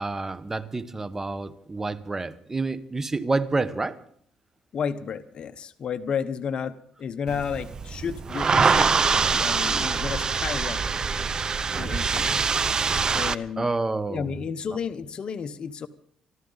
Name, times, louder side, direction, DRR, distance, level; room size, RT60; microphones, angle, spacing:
voice 1, 0.0-4.0 13.6-14.3, right 3 dB, 20° right, 13 dB, 1.1 m, -28 dB
voice 2, 4.7-10.9 11.8-12.4 13.1-13.7 14.1-15.9, left 7 dB, 50° left, 10 dB, 0.9 m, -32 dB
sound 1, 7.3-13.4, right 5 dB, 35° right, 0.7 m, -24 dB
25.5 x 13.0 x 4.0 m, 0.63 s
cardioid pair, 95°, 2 cm